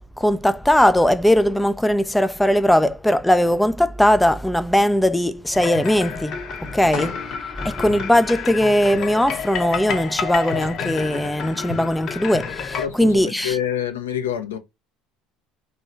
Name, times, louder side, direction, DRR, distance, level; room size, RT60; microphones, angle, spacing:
voice 1, 0.2-7.2 7.5-13.6, left 1 dB, 5° left, 0.4 m, -19 dB
sound 1, 5.5-12.9, left 6 dB, 50° left, 0.8 m, -30 dB
sound 2, 6.9-7.5 8.2-8.3 10.1-10.2 10.4-11.6, left 5 dB, 75° left, 1.3 m, -36 dB
voice 2, 12.8-14.6, left 9 dB, 90° left, 0.8 m, -27 dB
3.1 x 2.8 x 3.9 m
hypercardioid pair, 75°, 0 cm